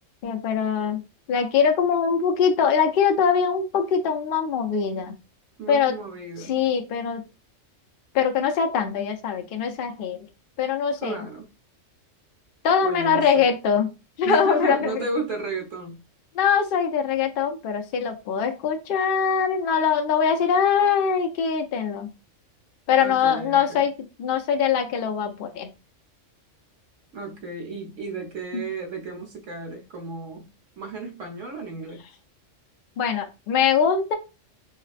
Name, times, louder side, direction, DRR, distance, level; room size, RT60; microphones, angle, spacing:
voice 1, 0.2-1.0 1.3-5.2 5.7-6.0 6.5-7.2 8.1-10.2 10.6-11.2 12.6-13.9 14.2-15.0 16.3-22.1 22.9-25.7 28.5-28.6 33.0-34.1, left 7 dB, 60° left, 0.6 m, -22 dB
voice 2, 5.6-6.6 11.0-11.5 12.8-13.5 14.2-16.0 23.0-23.8 27.1-30.5 30.8-32.0, right 3 dB, 80° right, 1.3 m, -33 dB
3.9 x 2.0 x 2.4 m
omnidirectional pair, 1.3 m